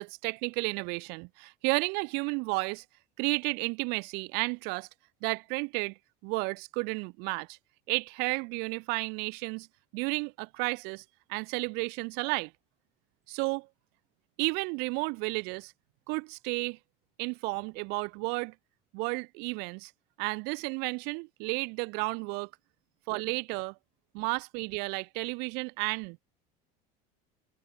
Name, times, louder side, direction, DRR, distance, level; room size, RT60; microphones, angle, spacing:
voice 1, 0.0-2.8 3.2-4.9 5.2-6.0 6.2-7.6 7.9-9.7 9.9-11.0 11.3-12.5 13.3-13.7 14.4-15.7 16.1-16.8 17.2-18.5 18.9-19.9 20.2-22.5 23.1-23.7 24.1-26.2, right 31 dB, 65° right, 4.7 m, -32 dB
cardioid pair, 155°, 18 cm